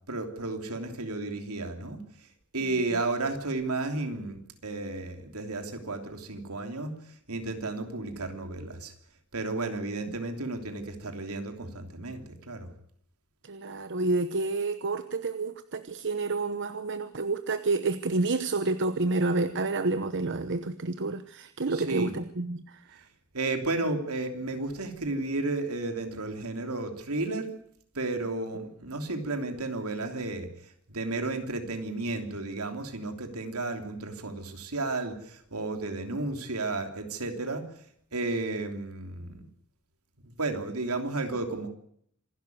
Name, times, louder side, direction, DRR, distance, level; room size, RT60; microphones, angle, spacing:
voice 1, 0.1-2.0 2.5-6.9 7.3-8.9 9.3-12.7 21.7-22.1 23.3-27.5 27.9-30.5 30.9-37.7 38.1-39.5 40.2-41.7, right 2 dB, 75° right, 6 dB, 3.2 m, -33 dB
voice 2, 13.4-23.0, right 3 dB, 55° right, 11 dB, 1.0 m, -29 dB
26.5 x 12.0 x 9.5 m, 0.68 s
head